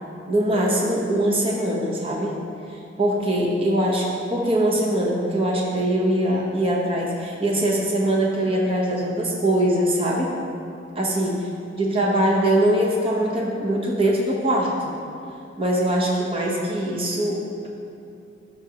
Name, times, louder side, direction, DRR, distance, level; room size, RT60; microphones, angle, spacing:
voice 1, 0.3-2.3 3.0-10.3 11.0-11.3 11.8-14.9 15.6-17.7, right 1 dB, 30° right, -2 dB, 1.0 m, -22 dB
12.0 x 6.6 x 2.9 m, 2.6 s
head